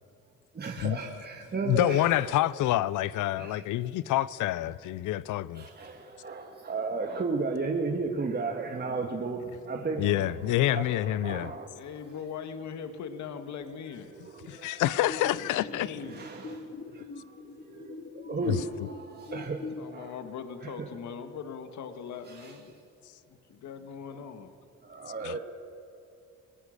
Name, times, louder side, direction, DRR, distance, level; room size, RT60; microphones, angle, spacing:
voice 1, 0.5-2.4 3.3-3.6 5.5-11.6 14.2-14.7 16.0-20.1 20.6-20.7 22.3-22.5 24.2-24.3 24.8-25.4, right 4 dB, 35° right, 1.7 m, -35 dB
voice 2, 1.7-5.6 10.0-11.5 14.6-16.0 18.4-18.6 25.2-25.4, left 14 dB, 85° left, 0.7 m, -27 dB
voice 3, 11.7-14.1 15.5-16.3 19.8-22.8 23.3-24.5, left 6 dB, 70° left, 1.6 m, -40 dB
sound 1, 14.8-19.8, left 3 dB, 35° left, 1.8 m, -43 dB
22.5 x 18.0 x 6.5 m
cardioid pair, 90°, 30 cm